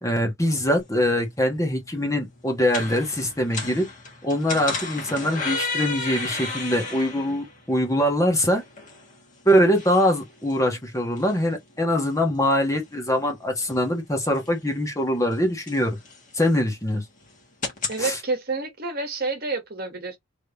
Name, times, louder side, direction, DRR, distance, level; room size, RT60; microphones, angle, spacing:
voice 1, 0.0-3.9 4.2-8.6 9.4-16.0 16.3-17.0 18.0-18.2, equal, 15° left, 1.2 m, -23 dB
sound 1, 0.8-18.0, left 3 dB, 40° left, 1.5 m, -36 dB
voice 2, 17.9-20.2, right 3 dB, 45° right, 1.3 m, -29 dB
3.4 x 3.1 x 4.0 m
head